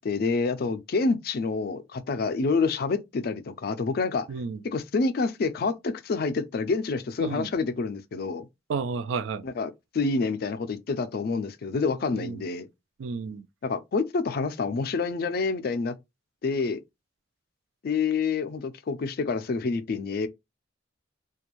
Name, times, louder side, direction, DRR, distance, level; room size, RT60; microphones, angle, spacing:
voice 1, 0.0-4.3 4.6-8.5 9.4-12.7 13.6-15.9 16.4-16.8 17.8-20.3, left 4 dB, 55° left, 0.4 m, -27 dB
voice 2, 4.3-4.6 7.2-7.5 8.7-9.4 12.1-12.4 13.0-13.4, right 5 dB, 80° right, 0.3 m, -31 dB
2.5 x 2.3 x 2.9 m
head